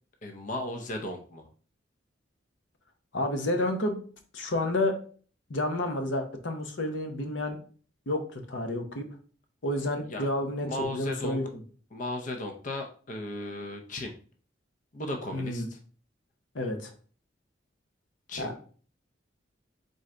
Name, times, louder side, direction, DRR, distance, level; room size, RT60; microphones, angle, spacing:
voice 1, 0.2-1.5 10.1-10.3 10.7-11.4 11.9-14.1 14.9-15.8 18.3-18.6, left 1 dB, 45° left, 3 dB, 0.6 m, -36 dB
voice 2, 3.1-4.0 4.3-5.0 5.5-7.6 8.1-9.0 9.6-10.7 10.9-11.5 15.3-15.7 16.5-16.9 18.4-18.5, left 1 dB, 90° left, 5 dB, 0.8 m, -30 dB
4.0 x 3.7 x 3.2 m, 0.42 s
head